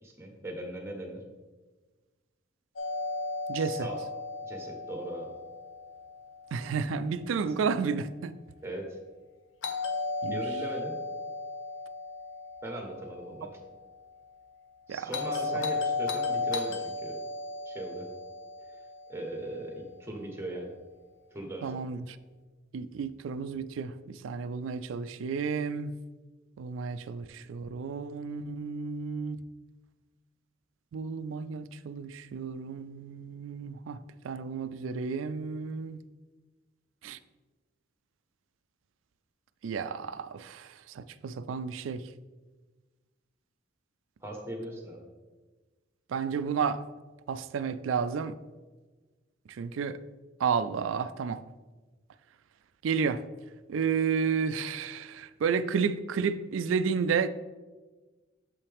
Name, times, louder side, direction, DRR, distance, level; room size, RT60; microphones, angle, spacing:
voice 1, 0.0-1.2 3.5-4.0 4.4-5.3 8.6-9.0 10.2-10.9 12.6-13.5 14.9-17.2 17.7-18.1 19.1-20.7 21.3-21.7 44.2-45.1, right 1 dB, 15° right, 1.1 m, -39 dB
Doorbell, 2.8-6.7 9.6-13.8 15.1-19.5, left 3 dB, 80° left, 0.7 m, -35 dB
voice 2, 3.5-3.9 6.5-8.3 10.2-10.4 14.9-15.1 15.6-15.7 21.6-22.0 22.7-23.9 24.2-25.9 26.6-29.4 30.9-34.0 34.2-36.0 37.0-37.2 39.6-40.6 41.0-42.0 46.1-46.8 47.3-48.3 49.6-50.0 50.4-51.4 52.8-53.2 53.7-57.3, right 6 dB, 85° right, 0.3 m, -31 dB
7.0 x 5.6 x 3.5 m
head